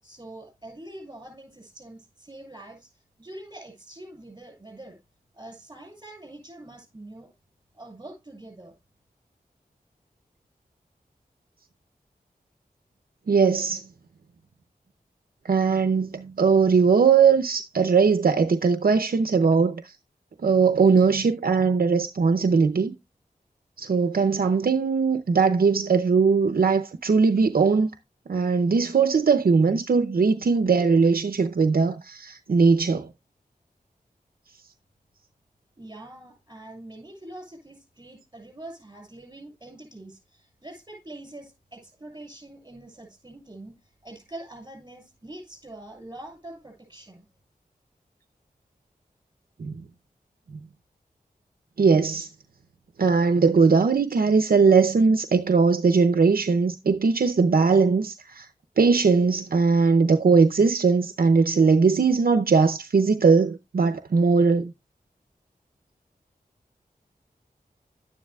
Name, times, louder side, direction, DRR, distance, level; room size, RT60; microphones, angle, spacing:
voice 1, 0.0-5.0 5.3-7.3 7.7-8.7 35.8-47.3, right 1 dB, 25° right, 6.6 m, -44 dB
voice 2, 13.3-13.9 15.4-19.9 20.4-22.9 23.8-27.9 28.3-33.1 49.6-49.7 51.8-52.3 53.0-58.5 58.8-64.7, right 5 dB, 70° right, 0.6 m, -20 dB
12.0 x 9.8 x 2.3 m
wide cardioid pair, 75°, 16 cm